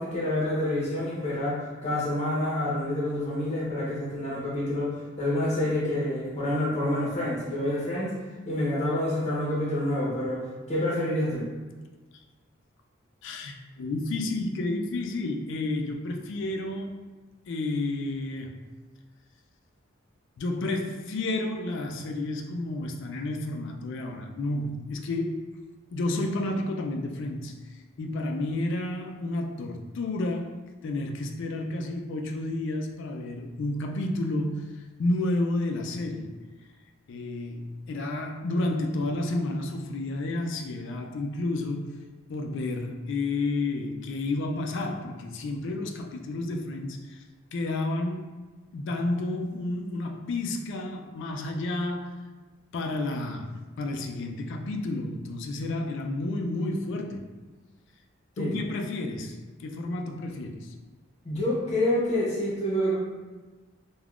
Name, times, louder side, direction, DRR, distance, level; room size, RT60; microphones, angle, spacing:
voice 1, 0.0-8.1 8.4-11.5 58.4-58.5 61.2-63.0, left 1 dB, 35° left, -6 dB, 0.9 m, -28 dB
voice 2, 13.2-17.0 17.5-18.7 20.4-25.5 25.9-27.6 28.0-34.7 35.0-36.4 37.1-42.0 42.3-47.2 47.5-48.4 48.7-52.2 52.7-57.3 58.4-60.7, left 2 dB, 65° left, 4 dB, 0.3 m, -31 dB
3.4 x 2.3 x 2.4 m, 1.3 s
head